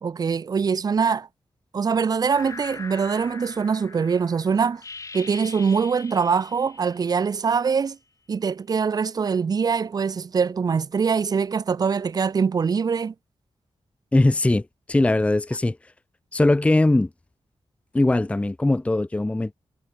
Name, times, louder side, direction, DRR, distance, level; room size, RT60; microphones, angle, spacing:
voice 1, 0.0-1.3 1.7-4.8 5.1-8.0 8.3-13.1, right 6 dB, 35° right, 0.4 m, -23 dB
sound 1, 2.3-7.7, left 4 dB, 30° left, 1.0 m, -42 dB
voice 2, 14.1-15.8 16.3-17.1 17.9-19.5, left 2 dB, 10° left, 0.5 m, -20 dB
wide cardioid pair, 140°, 11 cm